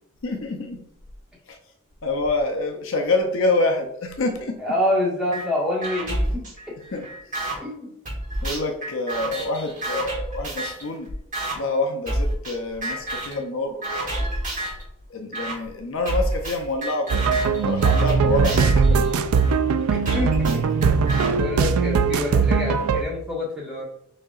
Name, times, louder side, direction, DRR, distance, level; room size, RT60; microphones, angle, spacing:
voice 1, 0.2-0.8 1.5-1.6 2.0-4.6 6.9-7.1 8.4-11.1 11.6-14.2 15.1-17.2 17.6-19.3, left 2 dB, 65° left, 4 dB, 0.5 m, -26 dB
voice 2, 4.6-6.8 7.5-7.9 18.3-18.6 19.7-20.6 21.3-23.8, left 1 dB, 5° right, -7 dB, 1.5 m, -27 dB
sound 1, 5.3-5.5 5.8-7.6 8.1-10.9 11.3-11.6 12.1-12.6 12.8-13.4 13.8-14.8 15.3-15.6 16.1-19.5 20.1-21.3, right 1 dB, 35° right, 1.5 m, -29 dB
sound 2, 17.1-23.0, right 5 dB, 85° right, 0.3 m, -20 dB
6.3 x 2.8 x 2.4 m, 0.73 s
head